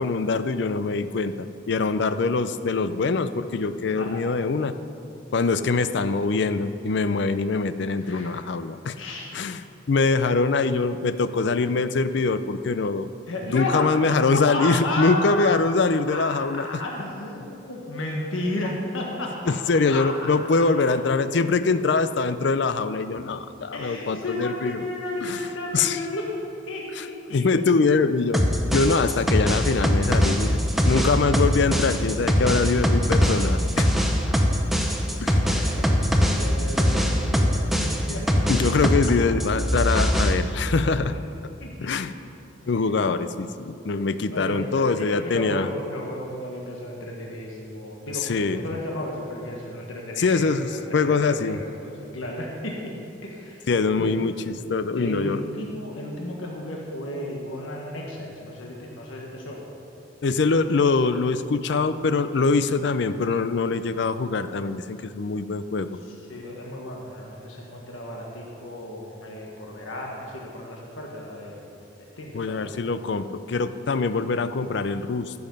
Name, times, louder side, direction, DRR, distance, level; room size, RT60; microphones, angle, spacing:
voice 1, 0.0-4.7 5.3-8.9 9.3-9.6 9.9-13.1 13.5-16.7 19.5-24.8 25.2-25.5 25.7-26.0 27.0-27.1 27.3-33.9 35.2-35.4 38.5-41.2 41.8-42.1 42.7-45.7 48.2-48.6 50.2-51.6 53.7-55.4 60.2-66.0 72.3-75.3, left 4 dB, 55° left, 12 dB, 0.4 m, -23 dB
voice 2, 8.0-8.3 9.0-9.4 13.3-14.0 14.3-15.8 16.1-16.2 16.5-19.5 19.9-20.7 23.7-26.4 26.7-27.7 34.3-34.4 35.5-38.5 39.1-39.2 41.1-41.3 41.6-42.2 42.6-42.9 44.2-52.8 53.2-54.1 55.0-59.6 66.0-71.7 71.9-72.6, left 1 dB, 75° left, -1 dB, 1.4 m, -33 dB
sound 1, 28.3-39.1 39.4-40.3, equal, ahead, 0.7 m, -22 dB
14.5 x 7.0 x 5.4 m, 2.7 s
head